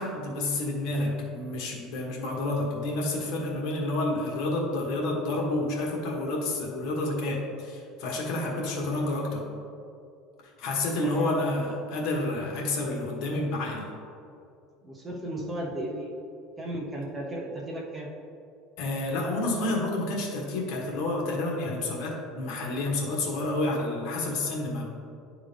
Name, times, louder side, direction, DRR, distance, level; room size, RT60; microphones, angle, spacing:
voice 1, 0.0-9.4 10.6-13.9 18.8-24.8, left 2 dB, 60° left, -2 dB, 1.4 m, -29 dB
voice 2, 8.5-8.9 10.9-11.3 14.8-16.1 16.6-18.1, right 1 dB, 20° right, -1 dB, 1.0 m, -35 dB
11.0 x 3.7 x 3.5 m, 2.5 s
cardioid pair, 140°, 0 cm